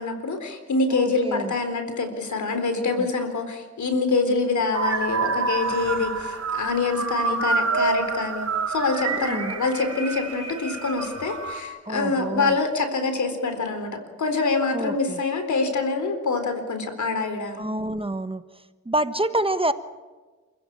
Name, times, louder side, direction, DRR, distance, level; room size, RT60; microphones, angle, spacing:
voice 1, 0.0-13.9 14.2-17.7, left 3 dB, 75° left, 8 dB, 4.0 m, -25 dB
voice 2, 0.9-1.5 3.0-3.1 9.0-9.5 11.9-12.6 14.7-15.2 17.6-18.4 18.8-19.7, right 1 dB, 20° right, 11 dB, 1.2 m, -27 dB
sound 1, 4.7-11.6, right 4 dB, 60° right, 4.0 m, -27 dB
28.5 x 15.5 x 8.7 m, 1.3 s
cardioid pair, 75°, 29 cm